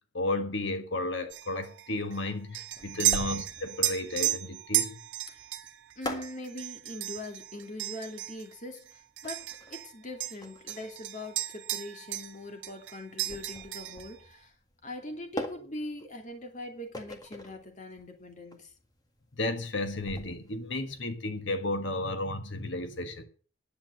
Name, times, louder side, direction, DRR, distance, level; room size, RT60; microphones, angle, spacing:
voice 1, 0.1-5.0 19.4-23.2, left 2 dB, 65° left, 1.4 m, -33 dB
sound 1, 1.3-9.9 10.2-12.4 12.6-14.1, right 14 dB, 70° right, 1.6 m, -34 dB
sound 2, 2.7-21.0, left 1 dB, 20° left, 1.8 m, -44 dB
voice 2, 6.0-14.5 14.8-18.7, left 1 dB, 35° left, 2.6 m, -42 dB
10.5 x 8.5 x 7.5 m
head